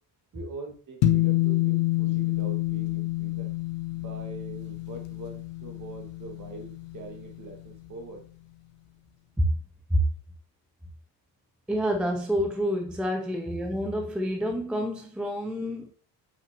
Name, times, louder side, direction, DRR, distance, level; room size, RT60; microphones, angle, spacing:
voice 1, 0.3-3.5 3.9-8.2, right 3 dB, 40° right, 1.9 m, -43 dB
sound 1, 1.0-7.6, left 15 dB, 70° left, 1.2 m, -28 dB
voice 2, 11.7-15.9, equal, ahead, 0.5 m, -28 dB
7.8 x 5.9 x 2.9 m
cardioid pair, 155°, 47 cm